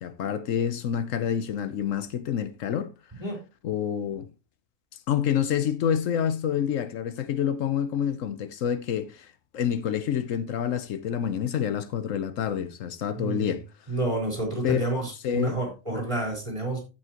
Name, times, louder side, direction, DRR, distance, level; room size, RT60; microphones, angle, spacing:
voice 1, 0.0-2.9 3.6-4.3 5.1-13.7 14.6-14.9 15.2-15.6, left 8 dB, 80° left, 1.1 m, -28 dB
voice 2, 13.2-13.5 13.9-16.8, right 2 dB, 25° right, 4.6 m, -29 dB
15.0 x 6.0 x 3.0 m
omnidirectional pair, 1.3 m